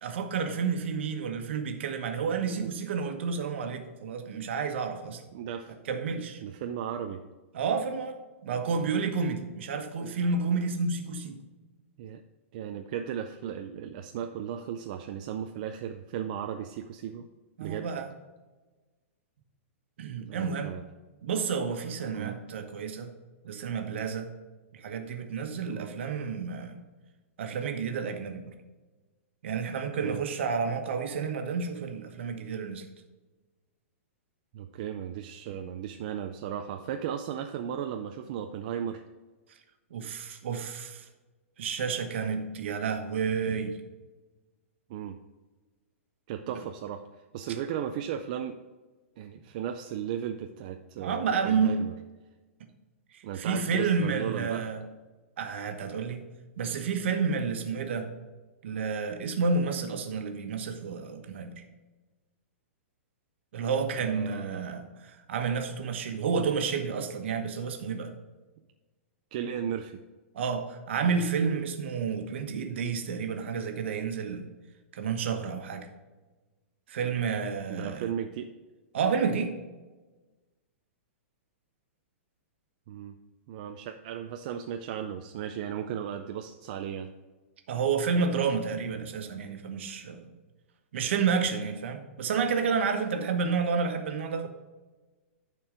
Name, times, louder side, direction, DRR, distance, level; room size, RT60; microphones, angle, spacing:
voice 1, 0.0-5.2 5.8-6.4 7.5-11.4 17.6-18.1 20.0-20.7 21.2-23.1 23.4-24.3 24.7-26.8 27.4-28.5 29.4-32.8 39.9-41.0 41.6-43.8 51.0-51.8 53.1-54.8 55.4-56.2 56.6-58.1 58.6-61.6 63.5-68.1 70.3-74.4 74.9-75.9 76.9-78.1 78.9-79.6 87.7-90.3 90.9-94.5, right 5 dB, 60° right, 5 dB, 1.2 m, -30 dB
voice 2, 5.3-5.7 6.4-7.2 12.0-12.2 12.5-17.3 17.6-17.9 20.2-20.8 22.1-22.4 25.7-25.9 30.0-30.2 34.5-39.0 44.9-45.2 46.3-47.0 47.3-48.6 49.2-51.9 53.2-54.6 64.0-64.6 69.3-70.0 77.7-78.5 82.9-83.1 83.5-87.1 91.5-91.6, right 9 dB, 35° right, 5 dB, 0.4 m, -35 dB
10.5 x 4.5 x 5.0 m, 1.2 s
hypercardioid pair, 170°, 7 cm